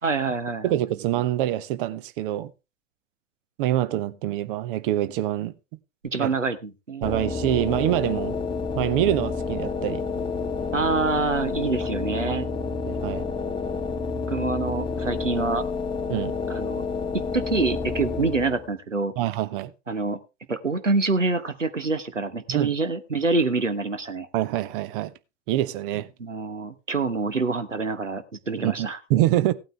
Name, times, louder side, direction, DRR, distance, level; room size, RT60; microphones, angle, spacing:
voice 1, 0.0-0.8 6.1-7.1 10.7-12.5 14.3-15.6 16.5-16.8 17.3-19.1 19.9-20.2 20.5-24.3 26.2-29.0, right 3 dB, 85° right, 1.2 m, -26 dB
voice 2, 0.6-2.5 3.6-5.5 6.2-6.3 7.0-8.4 8.7-10.0 12.3-12.4 12.8-13.3 16.1-16.3 19.2-19.7 22.5-22.7 24.3-25.1 25.5-26.1 28.6-29.5, right 13 dB, 45° right, 1.0 m, -25 dB
sound 1, 7.0-18.7, left 4 dB, 15° left, 1.2 m, -29 dB
16.5 x 9.0 x 3.4 m
figure-of-eight pair, 85°, 36 cm